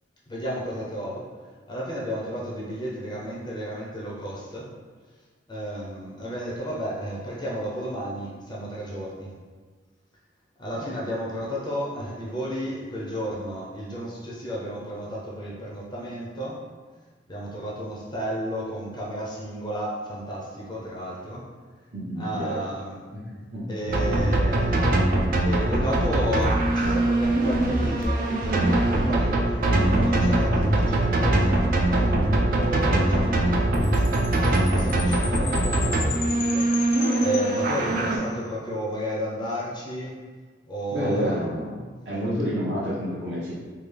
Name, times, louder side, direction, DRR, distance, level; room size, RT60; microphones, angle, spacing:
voice 1, 0.3-1.2 1.7-4.7 5.5-9.3 10.6-16.6 17.3-21.4 22.2-23.0 23.7-24.9 25.4-36.9 37.2-40.2 40.7-41.4, equal, 25° left, -5 dB, 0.5 m, -32 dB
voice 2, 21.9-22.6 23.1-23.2 23.5-23.7 29.6-30.3 40.9-41.7 42.0-43.5, equal, 70° right, -8 dB, 1.2 m, -29 dB
sound 1, 23.9-38.2, right 1 dB, 50° right, 0.4 m, -22 dB
Chime, 33.7-38.2, left 6 dB, 90° left, 0.4 m, -36 dB
3.5 x 2.3 x 3.3 m, 1.4 s
head